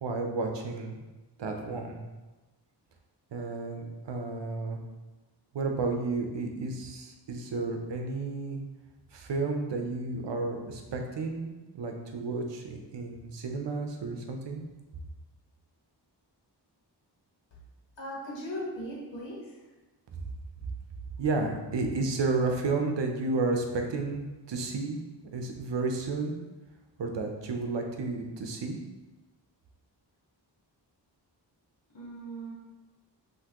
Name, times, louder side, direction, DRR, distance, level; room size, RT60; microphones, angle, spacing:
voice 1, 0.0-1.0 1.4-2.0 3.3-4.8 5.5-8.6 9.1-14.6 21.2-25.0 25.3-26.4 27.0-28.8, right 3 dB, 80° right, 3 dB, 0.7 m, -32 dB
voice 2, 18.0-19.6 31.9-32.5, equal, 85° left, -5 dB, 1.4 m, -38 dB
5.8 x 2.8 x 2.9 m, 1.1 s
wide cardioid pair, 120°, 43 cm